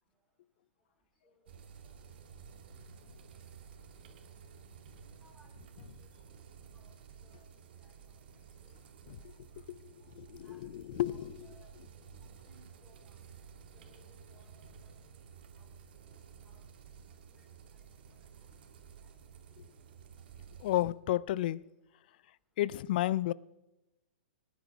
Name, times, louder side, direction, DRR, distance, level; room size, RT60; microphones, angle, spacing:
sound 1, 1.5-20.8, right 7 dB, 60° right, 2.1 m, -53 dB
voice 1, 5.2-6.9 7.2-7.5 7.8-7.9 8.6-8.8 9.2-9.3 10.4-10.6 11.0-11.7 12.5-13.2 13.7-15.2 15.5-15.7 16.0-16.1 16.4-16.6 17.3-17.4, equal, ahead, 3.1 m, -66 dB
voice 2, 9.7-11.3 20.6-21.6 22.6-23.3, left 14 dB, 55° left, 0.5 m, -32 dB
18.5 x 10.5 x 4.7 m
hypercardioid pair, 125°, 6 cm